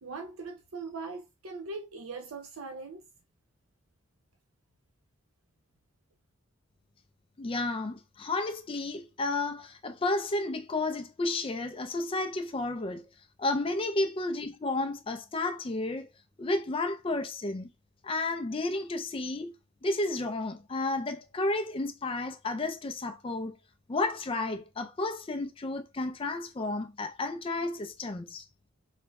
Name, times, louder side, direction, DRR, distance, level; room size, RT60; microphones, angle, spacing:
voice 1, 0.0-3.0, right 3 dB, 80° right, 0.6 m, -40 dB
voice 2, 7.4-13.0 13.4-16.1 16.4-17.7 18.0-19.5 19.8-23.5 23.9-28.5, left 2 dB, 25° left, 0.3 m, -32 dB
3.1 x 2.1 x 3.4 m
head